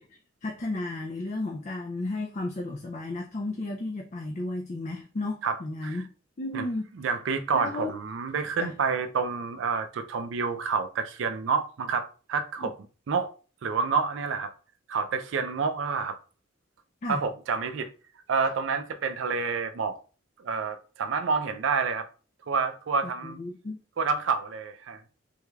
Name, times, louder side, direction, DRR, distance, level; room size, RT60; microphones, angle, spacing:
voice 1, 0.4-6.1 6.4-6.9 7.5-7.9 8.6-8.7 12.6-12.7 17.0-17.2 23.2-23.8, left 2 dB, 35° left, 0.4 m, -33 dB
voice 2, 7.0-12.7 13.1-13.3 13.6-14.5 14.9-16.2 17.1-17.9 18.3-20.0 20.4-22.1 22.5-23.4 24.0-25.0, right 5 dB, 70° right, 0.4 m, -28 dB
3.5 x 3.1 x 2.3 m
head